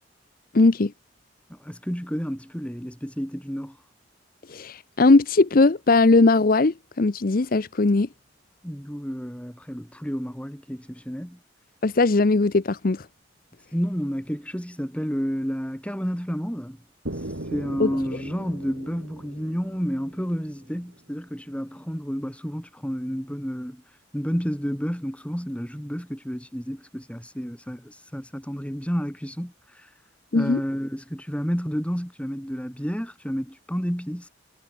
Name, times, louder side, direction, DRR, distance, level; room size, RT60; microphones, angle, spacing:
voice 1, 0.5-0.9 4.5-8.1 11.8-13.1 17.8-17.9 30.3-30.6, left 3 dB, 50° left, 0.7 m, -19 dB
voice 2, 1.5-3.8 8.6-11.4 13.7-16.8 17.5-23.8 24.1-29.9 30.3-34.3, equal, 5° left, 6.2 m, -30 dB
sound 1, 17.1-20.9, right 1 dB, 80° right, 3.3 m, -38 dB
head